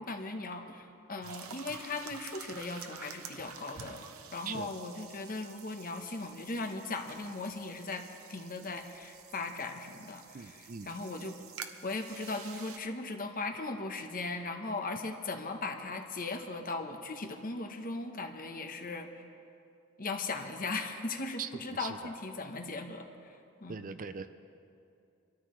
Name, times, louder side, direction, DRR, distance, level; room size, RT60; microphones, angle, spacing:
voice 1, 0.0-11.4 11.8-19.2 20.0-23.9, left 3 dB, 40° left, 5 dB, 1.0 m, -38 dB
sound 1, 1.2-12.8, right 7 dB, 80° right, 0.9 m, -49 dB
voice 2, 10.3-10.9 21.4-21.5 21.8-21.9 23.7-24.3, right 6 dB, 40° right, 10 dB, 0.5 m, -40 dB
25.5 x 13.5 x 3.2 m, 2.6 s
head